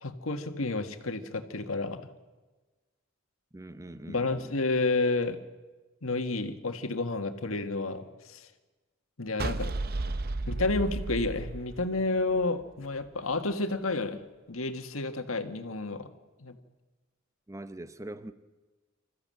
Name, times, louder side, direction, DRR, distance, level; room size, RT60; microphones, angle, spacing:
voice 1, 0.0-2.0 4.1-5.4 6.0-8.5 9.2-9.7 10.5-14.2 14.5-16.1 16.4-16.6, left 3 dB, 80° left, 1.7 m, -30 dB
voice 2, 3.5-4.6 17.5-18.3, right 1 dB, 15° right, 0.8 m, -42 dB
sound 1, 9.4-12.6, right 2 dB, 50° right, 0.8 m, -33 dB
26.0 x 14.5 x 7.7 m
head